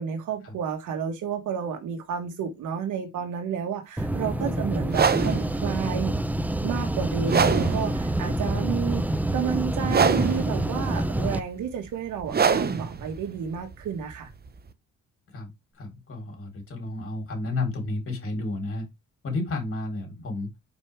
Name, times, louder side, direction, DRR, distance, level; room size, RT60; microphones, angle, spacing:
voice 1, 0.0-6.1 6.6-14.3, right 7 dB, 75° right, 1.6 m, -31 dB
sound 1, 4.0-11.4, right 1 dB, 5° right, 0.6 m, -27 dB
sound 2, 4.9-14.7, right 6 dB, 30° right, 0.9 m, -27 dB
voice 2, 15.8-18.9 19.2-20.5, left 2 dB, 45° left, 3.7 m, -32 dB
5.3 x 4.7 x 4.7 m
cardioid pair, 90°, 30 cm